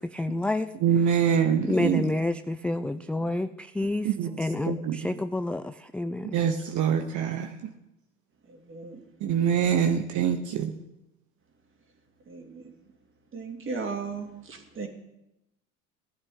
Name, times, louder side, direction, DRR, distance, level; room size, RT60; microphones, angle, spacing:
voice 1, 0.0-0.7 1.1-1.2 1.6-4.1 4.4-6.4, left 2 dB, 5° left, 10 dB, 0.4 m, -29 dB
voice 2, 0.8-2.0 4.0-4.4 4.6-5.0 6.2-7.5 9.2-10.7, right 8 dB, 50° right, 7 dB, 1.2 m, -24 dB
voice 3, 8.7-9.0 9.4-9.6 12.3-12.6 13.3-14.9, right 4 dB, 30° right, 3 dB, 2.9 m, -36 dB
17.5 x 11.5 x 4.0 m, 0.90 s
hypercardioid pair, 65°, 38 cm